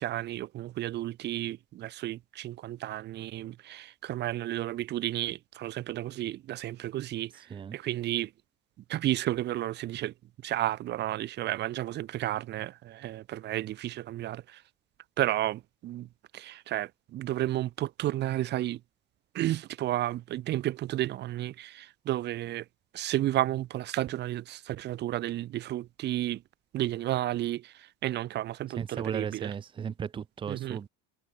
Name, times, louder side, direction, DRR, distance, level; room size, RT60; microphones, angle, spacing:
voice 1, 0.0-7.3 7.7-8.3 8.9-10.1 10.4-14.6 15.2-16.1 16.3-18.8 19.3-22.6 22.9-26.4 26.7-29.5 30.5-30.8, right 14 dB, 35° right, 6.9 m, -32 dB
voice 2, 28.8-30.9, right 7 dB, 15° right, 1.6 m, -35 dB
cardioid pair, 180°, 29 cm